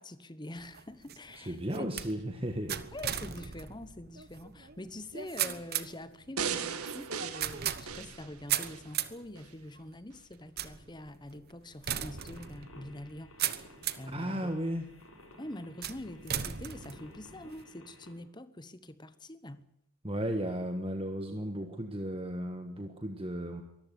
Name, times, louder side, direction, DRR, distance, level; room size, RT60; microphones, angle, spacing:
voice 1, 0.0-1.9 2.9-14.5 15.4-19.7, left 1 dB, 20° left, 1.2 m, -45 dB
sound 1, 0.6-14.2 14.7-15.2 15.8-17.6, right 10 dB, 45° right, 1.1 m, -38 dB
voice 2, 1.4-2.9 14.1-14.9 20.0-23.6, right 1 dB, 25° right, 1.6 m, -35 dB
sound 2, 6.4-8.9 9.4-9.5, right 7 dB, 80° right, 2.1 m, -37 dB
sound 3, 12.1-18.1, left 1 dB, 85° left, 7.3 m, -55 dB
23.5 x 14.0 x 9.5 m
head